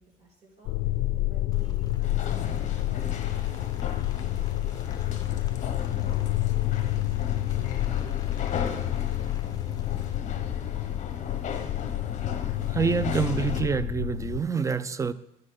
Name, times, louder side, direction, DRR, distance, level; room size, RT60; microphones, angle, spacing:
voice 1, 0.0-5.5 5.8-7.1 7.8-8.5, right 2 dB, 40° right, 2.7 m, -54 dB
sound 1, 0.6-14.4, left 15 dB, 80° left, 0.4 m, -29 dB
Rain, 1.5-10.2, left 5 dB, 20° left, 0.9 m, -54 dB
sound 2, 2.0-13.6, left 6 dB, 45° left, 1.0 m, -36 dB
voice 2, 12.7-15.1, right 6 dB, 20° right, 0.3 m, -27 dB
9.5 x 4.3 x 6.4 m
cardioid pair, 110°, 17 cm